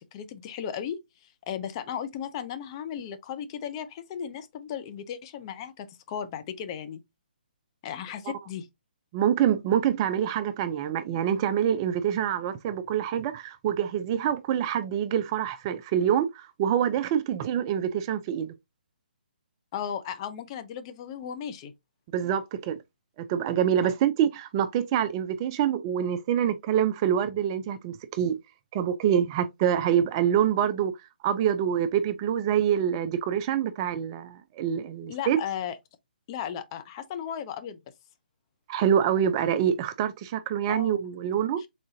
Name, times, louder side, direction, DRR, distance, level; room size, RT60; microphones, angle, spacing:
voice 1, 0.0-7.0 7.8-8.7 19.7-21.7 23.8-23.9 35.1-35.8 36.3-37.8 40.7-41.0 41.6-41.7, left 9 dB, 30° left, 0.6 m, -36 dB
voice 2, 9.1-18.5 22.1-22.8 23.2-28.4 28.7-31.0 31.2-35.4 38.7-41.6, right 9 dB, 25° right, 0.3 m, -26 dB
4.1 x 3.6 x 2.6 m
figure-of-eight pair, 140°, 5 cm